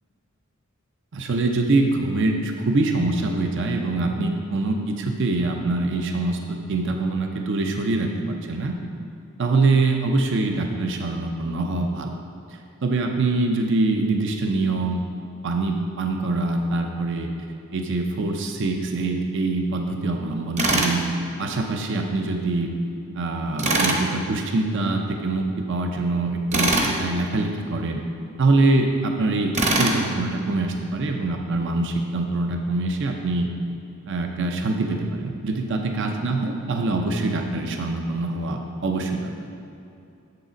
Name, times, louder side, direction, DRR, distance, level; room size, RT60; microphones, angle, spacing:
voice 1, 1.1-8.8 9.4-12.2 12.5-15.0 15.4-17.3 17.7-21.0 21.4-22.7 23.1-28.0 28.4-33.5 34.1-39.3, right 2 dB, 60° right, 3 dB, 0.6 m, -24 dB
Tools, 20.6-21.0 23.6-24.0 26.5-26.9 29.5-30.0, right 2 dB, 35° right, 0.9 m, -21 dB
7.1 x 6.7 x 5.1 m, 2.6 s
head